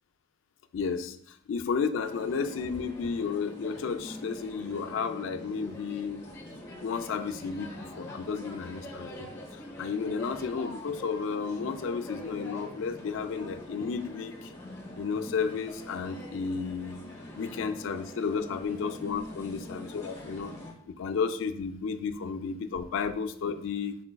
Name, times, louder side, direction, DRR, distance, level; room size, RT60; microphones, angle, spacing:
voice 1, 0.7-6.3 6.8-14.5 15.0-17.0 17.4-20.5 21.0-24.0, left 5 dB, 70° left, 8 dB, 0.4 m, -32 dB
sound 1, 2.0-20.7, left 1 dB, 15° left, 0.9 m, -44 dB
5.1 x 3.9 x 2.2 m, 0.65 s
head